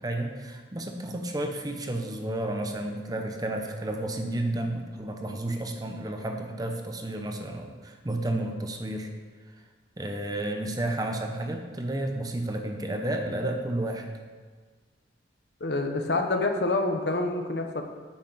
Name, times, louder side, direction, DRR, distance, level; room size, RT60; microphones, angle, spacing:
voice 1, 0.0-9.1 10.0-14.1, right 1 dB, 20° right, 4 dB, 0.8 m, -31 dB
voice 2, 15.6-17.8, left 2 dB, 70° left, 5 dB, 0.9 m, -27 dB
8.7 x 5.8 x 5.8 m, 1.5 s
head